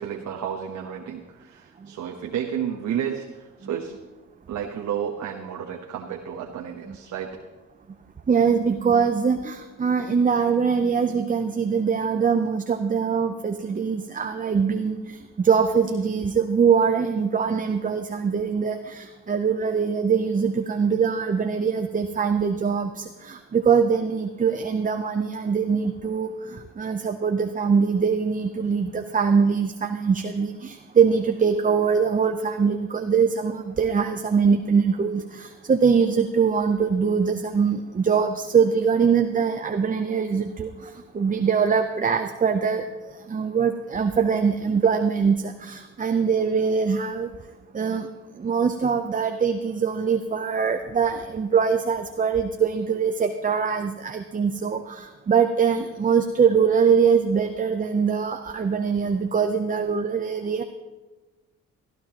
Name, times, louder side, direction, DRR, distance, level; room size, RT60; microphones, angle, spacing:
voice 1, 0.0-3.9 4.5-7.4, right 8 dB, 70° right, 1 dB, 1.1 m, -31 dB
voice 2, 8.3-42.9 43.3-47.3 47.7-48.1 48.4-60.6, right 6 dB, 25° right, 6 dB, 0.7 m, -23 dB
18.0 x 14.0 x 3.0 m, 1.2 s
cardioid pair, 90°, 30 cm